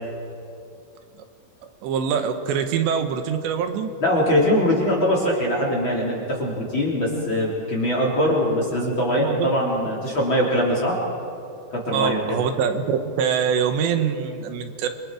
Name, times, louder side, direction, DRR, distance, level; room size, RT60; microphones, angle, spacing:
voice 1, 1.8-3.9 9.2-9.5 11.9-14.9, right 7 dB, 75° right, 7 dB, 3.3 m, -24 dB
voice 2, 4.0-11.0 11.7-12.4, equal, 30° left, -3 dB, 3.7 m, -22 dB
28.0 x 24.5 x 4.8 m, 2.6 s
omnidirectional pair, 5.3 m